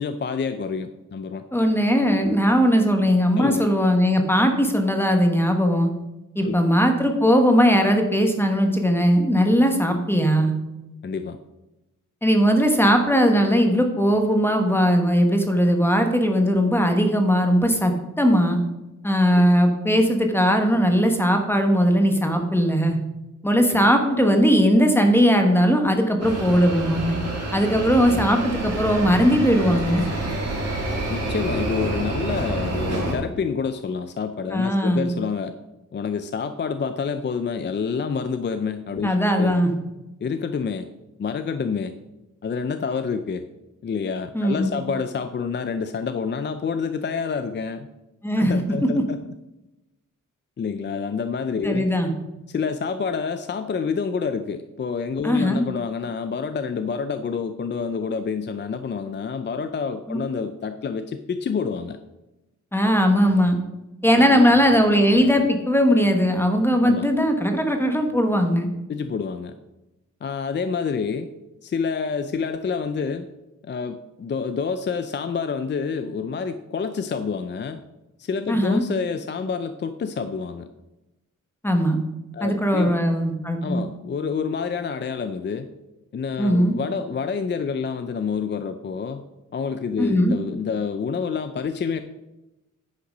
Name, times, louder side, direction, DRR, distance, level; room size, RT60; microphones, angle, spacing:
voice 1, 0.0-1.4 3.4-3.7 6.4-6.7 11.0-11.4 19.3-19.6 23.7-23.9 28.1-28.3 31.1-35.5 35.9-39.6 40.2-40.8 41.2-41.9 42.4-43.4 43.8-47.9 48.4-49.2 50.6-51.9 52.5-62.0 64.1-64.6 66.8-67.1 68.9-69.5 70.2-71.3 71.6-73.3 73.6-77.8 78.2-80.7 82.3-83.0 83.6-85.7 86.1-89.2 89.5-92.0, left 5 dB, 35° left, 9 dB, 0.4 m, -28 dB
voice 2, 1.5-5.9 6.3-10.5 12.2-18.6 19.0-23.0 23.4-27.2 27.5-30.1 34.5-35.1 39.0-39.7 44.3-44.8 48.2-48.6 51.6-52.1 55.2-55.6 60.1-60.2 62.7-63.6 64.0-68.7 78.5-78.8 81.6-82.0 82.4-83.8 86.4-86.8 90.0-90.3, equal, 5° left, 4 dB, 1.1 m, -19 dB
sound 1, 26.2-33.1, right 2 dB, 50° right, 2.4 m, -28 dB
10.0 x 5.6 x 5.4 m, 0.98 s
wide cardioid pair, 160°, 32 cm